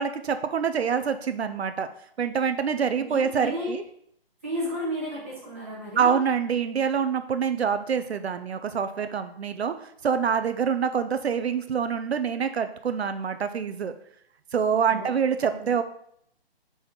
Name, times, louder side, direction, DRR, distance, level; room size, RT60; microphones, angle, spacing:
voice 1, 0.0-1.9 2.2-3.8 6.0-13.9 14.5-15.8, right 7 dB, 80° right, 9 dB, 0.7 m, -26 dB
voice 2, 3.0-3.8 4.4-6.2 14.9-15.7, equal, 15° right, -6 dB, 1.1 m, -33 dB
5.6 x 4.3 x 5.9 m, 0.69 s
hypercardioid pair, 180°, 31 cm